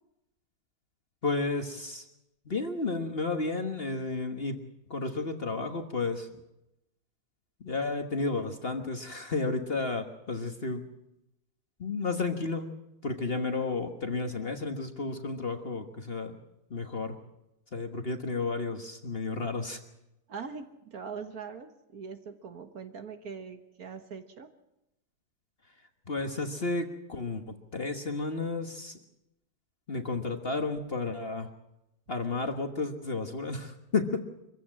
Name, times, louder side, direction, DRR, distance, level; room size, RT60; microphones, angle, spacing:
voice 1, 1.2-2.0 2.5-4.6 4.9-6.3 7.6-10.8 11.8-12.7 13.0-16.4 16.7-17.1 17.7-19.8 26.1-29.0 29.9-31.5 32.1-34.3, left 3 dB, 35° left, 6 dB, 1.4 m, -32 dB
voice 2, 20.3-24.5, right 5 dB, 55° right, 8 dB, 1.6 m, -42 dB
24.0 x 15.5 x 7.5 m, 0.90 s
omnidirectional pair, 2.0 m